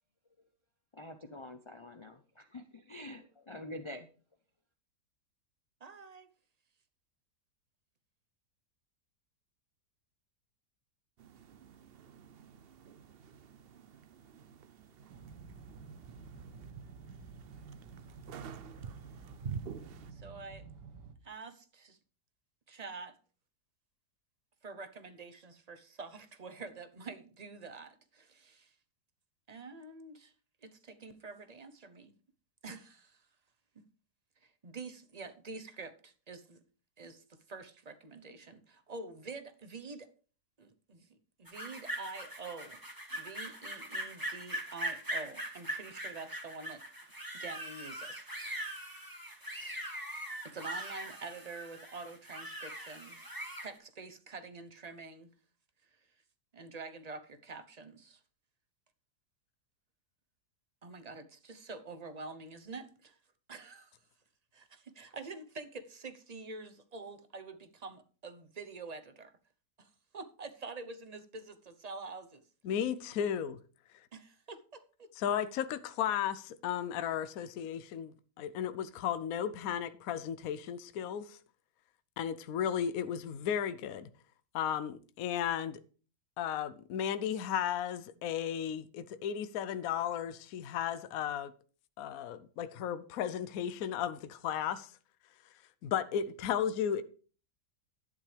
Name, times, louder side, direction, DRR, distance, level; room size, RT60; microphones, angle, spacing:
voice 1, 0.9-4.1, left 1 dB, 45° left, 0.4 m, -46 dB
voice 2, 5.8-6.3 20.1-20.6 21.2-22.0 22.7-23.1 24.6-28.7 29.5-30.3 30.6-32.1 32.6-33.2 34.4-36.6 37.0-40.1 40.6-42.8 43.1-46.8 47.3-48.2 50.4-53.2 53.6-55.4 56.5-58.2 60.8-63.2 63.5-63.9 64.5-69.3 69.8-72.4 74.1-74.6 75.0-75.1, right 3 dB, 35° right, 0.7 m, -47 dB
sound 1, 11.2-20.1, right 6 dB, 70° right, 0.5 m, -48 dB
sound 2, 15.1-21.1, right 5 dB, 90° right, 1.7 m, -51 dB
sound 3, 41.5-53.7, right 1 dB, 10° right, 2.0 m, -41 dB
voice 3, 72.6-73.6 75.2-81.4 82.2-84.1 84.5-85.8 86.4-91.5 92.0-94.9 95.8-97.0, left 9 dB, 65° left, 1.0 m, -34 dB
12.0 x 10.5 x 3.4 m
omnidirectional pair, 1.8 m